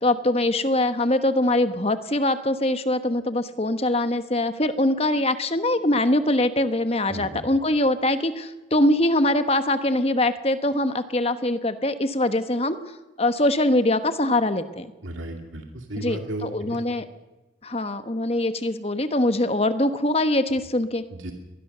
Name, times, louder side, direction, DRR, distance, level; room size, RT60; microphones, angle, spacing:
voice 1, 0.0-12.8 13.2-14.9 16.0-17.0 17.6-21.0, left 1 dB, 30° left, 10 dB, 1.2 m, -23 dB
voice 2, 7.1-7.4 15.0-16.8 21.1-21.3, right 1 dB, 85° right, 3 dB, 2.4 m, -34 dB
23.0 x 19.5 x 6.8 m, 1.1 s
head